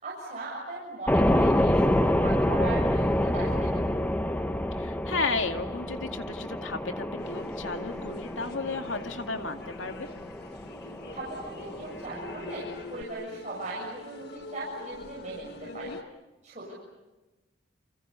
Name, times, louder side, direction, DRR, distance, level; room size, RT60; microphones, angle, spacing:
voice 1, 0.0-3.8 10.8-12.6 12.9-15.9 16.4-16.7, right 2 dB, 35° right, -5 dB, 7.2 m, -39 dB
sound 1, 1.1-13.0, left 1 dB, 10° left, 0.9 m, -28 dB
voice 2, 4.8-10.1 15.6-16.0, left 3 dB, 80° left, 5 dB, 2.2 m, -33 dB
sound 2, 7.2-16.0, left 3 dB, 55° left, 1.6 m, -45 dB
29.5 x 27.5 x 7.0 m, 1.1 s
head